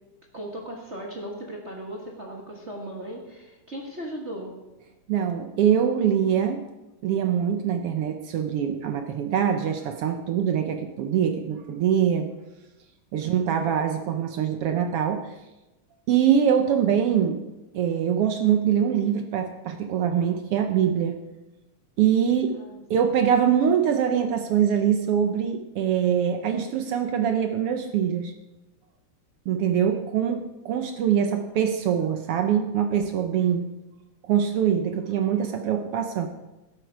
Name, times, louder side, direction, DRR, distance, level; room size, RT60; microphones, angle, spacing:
voice 1, 0.3-4.6 13.2-13.7 22.6-23.3, right 1 dB, 35° right, -1 dB, 1.1 m, -38 dB
voice 2, 5.1-6.6 7.0-12.3 13.1-15.2 16.1-17.4 17.7-21.2 22.0-22.6 22.9-28.3 29.5-33.6 34.3-36.3, right 8 dB, 75° right, 6 dB, 1.3 m, -23 dB
12.0 x 11.5 x 4.7 m, 1.0 s
omnidirectional pair, 3.5 m